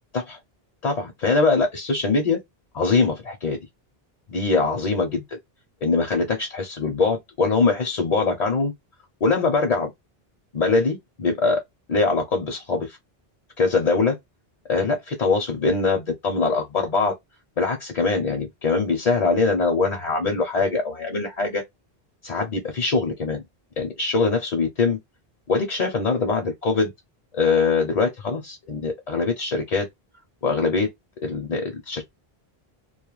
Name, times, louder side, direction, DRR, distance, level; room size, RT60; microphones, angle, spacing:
voice 1, 0.8-2.4 2.7-3.6 4.3-5.4 5.8-8.7 9.2-9.9 10.5-11.6 11.9-13.0 13.6-14.2 14.7-17.1 17.6-21.6 22.2-23.4 23.8-25.0 25.5-26.9 27.3-29.9 30.4-30.9 31.2-32.0, left 4 dB, 50° left, 0.6 m, -22 dB
2.3 x 2.1 x 2.9 m
omnidirectional pair, 1.0 m